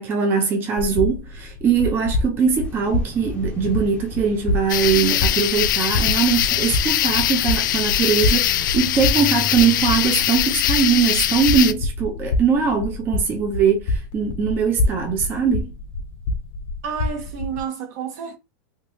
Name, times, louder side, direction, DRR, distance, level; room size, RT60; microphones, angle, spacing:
voice 1, 0.0-15.7, right 6 dB, 20° right, 0.6 m, -21 dB
sound 1, 0.8-17.6, left 2 dB, 45° left, 0.8 m, -27 dB
sound 2, 2.6-10.3, left 4 dB, 10° left, 0.8 m, -38 dB
sound 3, 4.7-11.7, left 12 dB, 80° left, 0.4 m, -22 dB
voice 2, 16.8-18.4, right 7 dB, 55° right, 1.0 m, -30 dB
3.6 x 3.0 x 2.7 m
supercardioid pair, 165°, 10 cm